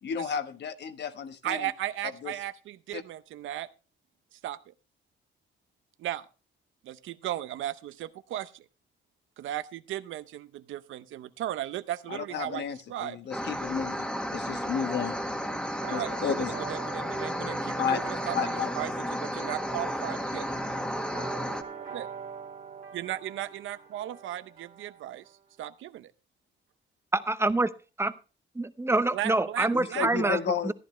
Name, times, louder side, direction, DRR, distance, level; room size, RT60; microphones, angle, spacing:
voice 1, 0.0-1.7 2.2-2.3 2.9-3.0 12.1-15.2 15.9-16.5 17.8-18.0 18.3-18.7 29.7-30.7, left 7 dB, 60° left, 1.2 m, -32 dB
voice 2, 1.4-3.7 4.3-4.7 6.0-6.3 6.8-8.7 9.4-13.2 15.9-18.9 19.2-20.5 21.9-22.1 22.9-25.2 25.6-26.1 29.1-30.4, right 13 dB, 80° right, 0.7 m, -36 dB
sound 1, 13.3-21.6, equal, 5° left, 1.6 m, -33 dB
sound 2, 15.7-25.3, right 6 dB, 45° right, 2.3 m, -44 dB
voice 3, 27.1-27.7 28.0-28.1 28.5-30.7, right 2 dB, 15° right, 0.8 m, -26 dB
14.0 x 10.0 x 3.1 m
cardioid pair, 90°, 20 cm